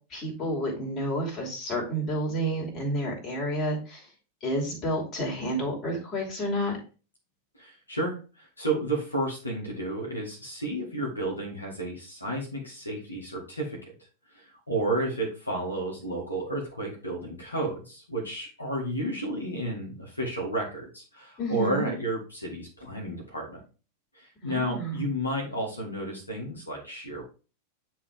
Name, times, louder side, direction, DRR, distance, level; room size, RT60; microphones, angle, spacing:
voice 1, 0.1-4.0 4.4-6.8 21.4-21.9 24.4-25.1, equal, 35° left, -1 dB, 2.8 m, -30 dB
voice 2, 7.5-13.9 14.3-23.6 24.1-27.2, right 1 dB, 80° left, -2 dB, 1.9 m, -32 dB
9.4 x 3.5 x 3.4 m, 0.34 s
figure-of-eight pair, 90°, 0 cm